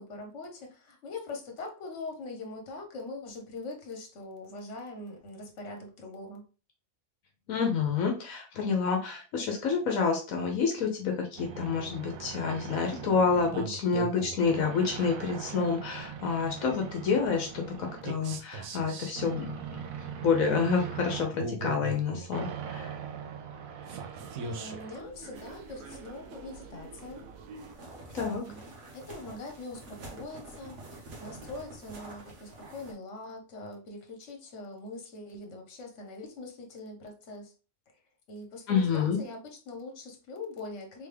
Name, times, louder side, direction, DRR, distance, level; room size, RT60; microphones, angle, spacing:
voice 1, 0.0-6.4 24.0-24.1 24.4-27.3 28.4-28.7 28.9-37.5 38.3-41.1, left 2 dB, 60° left, 2 dB, 1.3 m, -42 dB
voice 2, 7.5-19.8 20.2-22.9 28.1-28.4 38.7-39.2, left 5 dB, 80° left, 3 dB, 1.1 m, -28 dB
sound 1, 11.4-27.7, right 6 dB, 90° right, 1.1 m, -40 dB
sound 2, 25.3-32.9, right 2 dB, 60° right, 1.3 m, -48 dB
3.6 x 3.4 x 3.3 m, 0.35 s
omnidirectional pair, 1.4 m